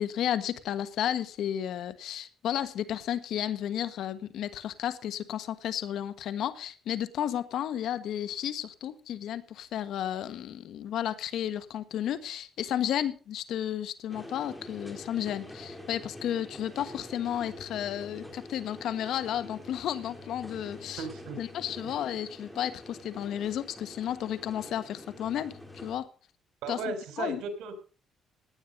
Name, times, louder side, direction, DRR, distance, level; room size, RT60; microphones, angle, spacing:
voice 1, 0.0-21.1 21.4-26.1 26.7-27.4, left 10 dB, 75° left, 12 dB, 1.4 m, -33 dB
sound 1, 14.1-26.0, left 1 dB, 5° left, 3.8 m, -46 dB
voice 2, 21.0-21.4 26.6-27.8, right 4 dB, 85° right, 8 dB, 4.0 m, -35 dB
18.0 x 9.6 x 5.3 m, 0.37 s
cardioid pair, 95°, 0 cm